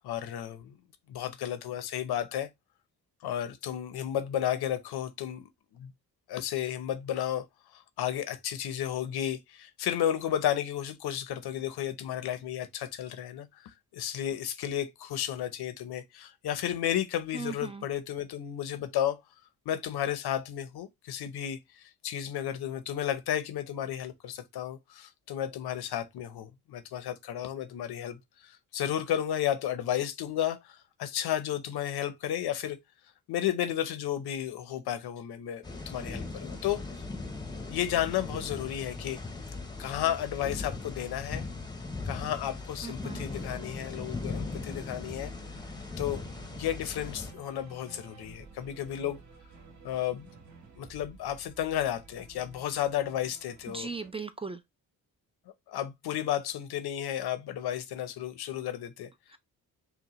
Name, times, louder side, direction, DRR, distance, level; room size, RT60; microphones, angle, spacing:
voice 1, 0.0-0.8 1.1-2.5 3.2-5.9 6.3-7.4 7.7-19.2 19.7-32.8 33.3-36.8 37.7-39.2 39.8-41.4 42.0-45.3 46.0-46.2 46.6-49.2 49.8-50.3 50.8-53.9 55.7-59.1, left 11 dB, 85° left, 0.8 m, -33 dB
voice 2, 17.3-17.8 42.8-43.3 53.7-54.6, right 4 dB, 15° right, 0.3 m, -38 dB
sound 1, 35.6-47.3, left 3 dB, 10° left, 0.7 m, -39 dB
sound 2, 43.3-54.1, right 4 dB, 50° right, 1.1 m, -53 dB
5.8 x 2.2 x 3.0 m
cardioid pair, 100°, 38 cm